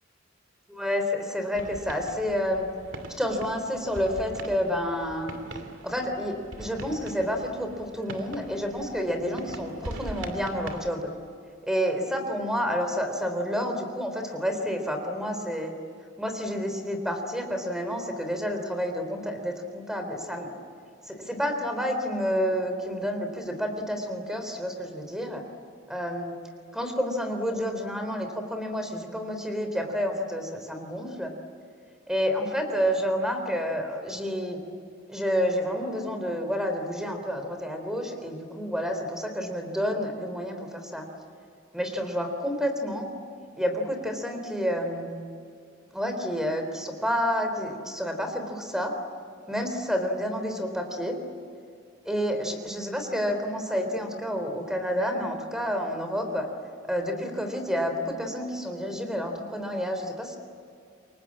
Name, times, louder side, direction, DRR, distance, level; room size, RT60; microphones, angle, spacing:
voice 1, 0.7-2.7 3.2-5.3 5.8-11.1 11.7-15.7 16.2-20.5 21.1-25.4 25.9-26.4 26.7-31.3 32.1-34.6 35.1-41.1 41.7-43.1 43.6-45.1 45.9-48.9 49.5-51.2 52.1-56.5 56.9-60.4, equal, 5° right, 5 dB, 3.6 m, -29 dB
sound 1, 1.5-10.9, right 1 dB, 70° right, 2.6 m, -42 dB
28.5 x 23.5 x 8.7 m, 2.4 s
head